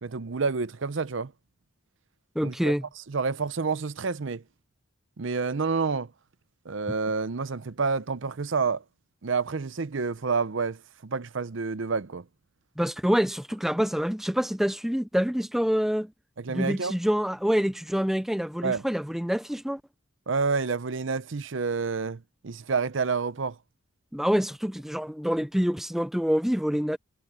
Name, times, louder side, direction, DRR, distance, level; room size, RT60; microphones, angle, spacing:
voice 1, 0.0-1.3 2.4-2.7 3.1-4.4 5.2-6.1 6.7-8.8 9.2-12.2 16.4-16.9 18.6-18.8 20.3-23.6, right 4 dB, 60° right, 0.6 m, -29 dB
voice 2, 2.4-2.9 12.8-16.1 16.5-19.8 24.1-27.0, equal, ahead, 0.4 m, -26 dB
head